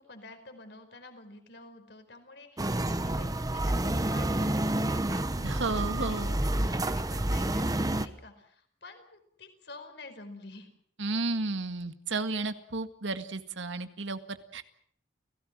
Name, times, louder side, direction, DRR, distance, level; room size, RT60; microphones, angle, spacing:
voice 1, 0.0-10.7, left 2 dB, 60° left, 7 dB, 4.9 m, -49 dB
sound 1, 2.6-8.1, right 1 dB, 20° right, 1.0 m, -29 dB
voice 2, 5.4-6.3 11.0-14.6, right 3 dB, 80° right, 9 dB, 1.9 m, -33 dB
30.0 x 17.5 x 7.6 m, 0.64 s
head